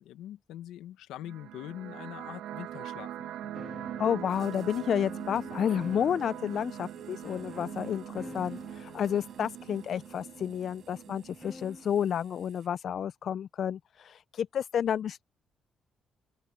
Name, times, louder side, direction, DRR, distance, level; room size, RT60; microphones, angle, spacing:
voice 1, 0.0-3.5, left 12 dB, 90° left, 1.3 m, -43 dB
sound 1, 1.2-12.2, right 11 dB, 85° right, 1.4 m, -42 dB
sound 2, 3.5-11.9, left 1 dB, 10° left, 2.9 m, -48 dB
voice 2, 4.0-15.2, left 9 dB, 60° left, 0.3 m, -31 dB
sound 3, 4.3-12.7, right 8 dB, 60° right, 7.2 m, -62 dB
open air
cardioid pair, 90°, 0 cm